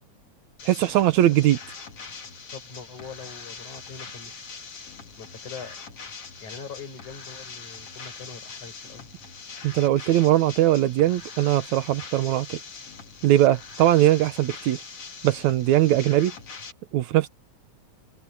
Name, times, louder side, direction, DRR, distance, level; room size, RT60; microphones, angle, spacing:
sound 1, 0.6-16.7, left 5 dB, 50° left, 3.9 m, -42 dB
voice 1, 0.7-1.6 9.6-12.6 13.2-14.8 15.2-16.3 16.9-17.3, right 13 dB, 75° right, 2.2 m, -20 dB
voice 2, 2.5-4.4 5.2-5.8 6.4-9.1, left 5 dB, 75° left, 8.3 m, -42 dB
omnidirectional pair, 3.5 m